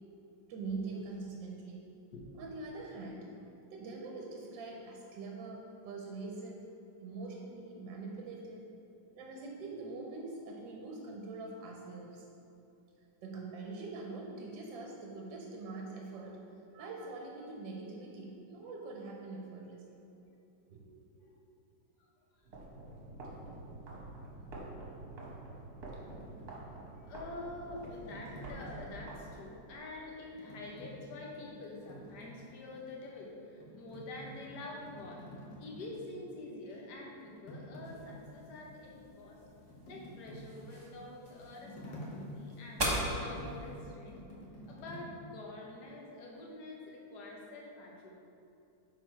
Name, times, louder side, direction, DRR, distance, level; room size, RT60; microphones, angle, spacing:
voice 1, 0.5-1.8 2.4-3.3 3.7-6.6 7.0-8.7 9.1-12.2 13.2-16.4 16.7-20.0 20.7-21.4, right 3 dB, 75° right, -1 dB, 1.4 m, -44 dB
sound 1, 22.4-29.8, right 2 dB, 60° right, 1.6 m, -48 dB
sound 2, 26.1-29.5 30.2-32.9 33.3-36.6 36.8-45.1, equal, 85° left, 1.9 m, -50 dB
voice 2, 27.0-35.2 35.6-39.4 39.9-44.2 44.7-48.1, left 2 dB, 65° left, -1 dB, 1.5 m, -47 dB
sound 3, 37.8-43.8, right 1 dB, 25° right, 0.6 m, -40 dB
6.4 x 4.5 x 4.5 m, 2.7 s
omnidirectional pair, 2.0 m